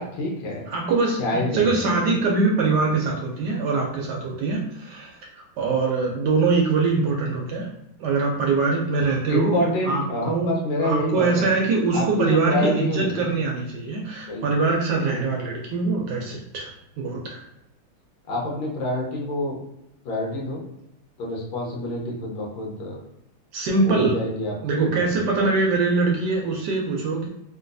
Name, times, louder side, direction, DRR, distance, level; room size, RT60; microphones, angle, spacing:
voice 1, 0.0-0.7 1.2-2.0 9.3-11.5 11.9-13.2 14.3-14.4 15.1-15.3 18.3-19.6 20.0-20.6 21.2-23.0 23.8-25.2, left 1 dB, 80° left, -2 dB, 1.6 m, -27 dB
voice 2, 0.7-7.7 8.0-10.5 10.8-16.7 17.0-17.4 23.5-24.1 24.6-27.3, right 3 dB, 75° right, -1 dB, 1.0 m, -23 dB
3.8 x 2.2 x 2.5 m, 0.84 s
omnidirectional pair, 2.2 m